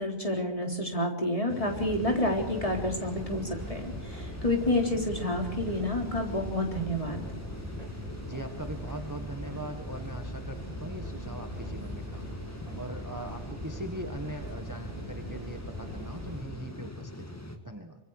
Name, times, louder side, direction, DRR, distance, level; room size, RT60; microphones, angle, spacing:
voice 1, 0.0-7.2, left 1 dB, 30° left, 2 dB, 3.8 m, -29 dB
sound 1, 1.5-17.6, left 1 dB, 15° left, 1.9 m, -43 dB
sound 2, 1.7-16.4, right 1 dB, 30° right, 4.4 m, -41 dB
voice 2, 8.3-12.5 12.8-17.4 17.6-18.0, right 1 dB, 15° right, 5 dB, 1.6 m, -41 dB
25.5 x 25.0 x 4.9 m, 0.82 s
omnidirectional pair, 1.2 m